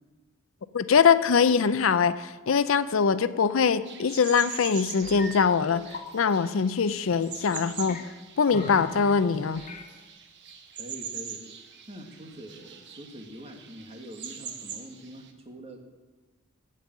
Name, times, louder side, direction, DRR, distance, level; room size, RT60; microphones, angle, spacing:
voice 1, 0.7-5.8 6.1-8.0 8.4-9.6, left 6 dB, 65° left, 14 dB, 0.5 m, -23 dB
sound 1, 3.8-15.3, right 7 dB, 55° right, 1.2 m, -42 dB
sound 2, 5.0-5.3 5.7-6.1 7.1-8.1 8.5-9.1 9.6-9.9, left 3 dB, 35° left, 1.1 m, -41 dB
voice 2, 10.7-11.4 11.9-15.9, equal, 30° right, 3 dB, 1.7 m, -44 dB
15.0 x 5.4 x 8.8 m, 1.2 s
head